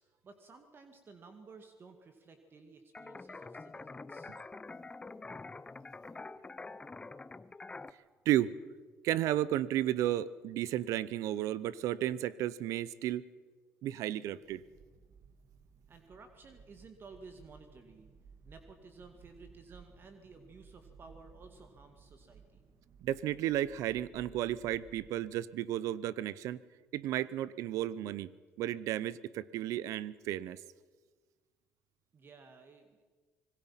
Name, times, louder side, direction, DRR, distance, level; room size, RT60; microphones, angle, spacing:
voice 1, 0.0-4.3 15.9-18.1 18.4-22.6 32.1-33.0, right 4 dB, 40° right, 7 dB, 2.2 m, -55 dB
sound 1, 2.9-7.9, left 3 dB, 20° left, 0.7 m, -46 dB
voice 2, 9.0-13.3 13.8-14.6 23.0-26.6 26.9-28.3 28.6-30.6, right 13 dB, 80° right, 20 dB, 0.7 m, -33 dB
sound 2, 14.4-25.1, right 5 dB, 60° right, 1.8 m, -59 dB
25.5 x 20.5 x 5.8 m, 1.4 s
cardioid pair, 90°, 5 cm